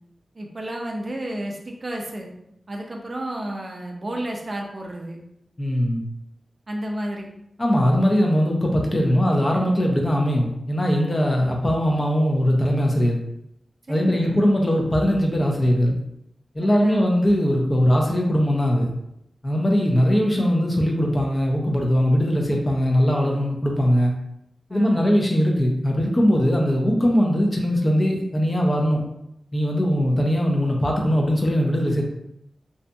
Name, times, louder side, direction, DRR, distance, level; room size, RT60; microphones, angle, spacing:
voice 1, 0.3-2.3 2.7-5.2 6.7-7.3 9.0-9.3 13.9-14.4 16.6-17.0 24.7-25.1, right 1 dB, 40° right, 0 dB, 0.4 m, -32 dB
voice 2, 5.6-6.0 7.6-13.2 13.9-16.0 16.5-18.9 19.4-24.1 24.7-29.0 29.5-32.0, equal, 30° left, 0 dB, 0.5 m, -20 dB
2.6 x 2.5 x 2.2 m, 0.79 s
wide cardioid pair, 95°, 0 cm